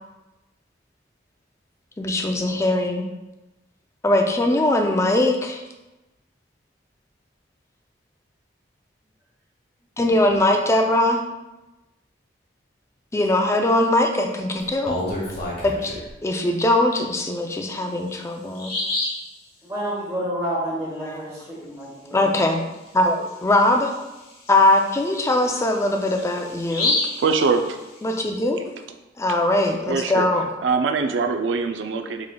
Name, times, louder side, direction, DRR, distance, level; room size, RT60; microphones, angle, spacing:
voice 1, 2.0-3.1 4.0-5.6 10.0-11.2 13.1-15.0 15.6-18.7 21.0-21.2 22.1-22.6 22.9-23.9 24.5-27.0 28.0-28.7 29.2-30.5, left 1 dB, 15° left, 3 dB, 0.3 m, -21 dB
Bird vocalization bird call bird song, 14.6-16.1 17.6-17.7 18.1-18.2 18.5-19.3 22.7-22.9 23.3-23.4 23.9-28.1, left 2 dB, 55° left, 1.2 m, -29 dB
voice 2, 19.6-22.3, equal, 15° right, -7 dB, 1.4 m, -29 dB
voice 3, 27.2-27.8 29.9-30.3 30.6-32.3, right 4 dB, 85° right, 6 dB, 0.4 m, -22 dB
5.0 x 3.7 x 2.2 m, 1.0 s
head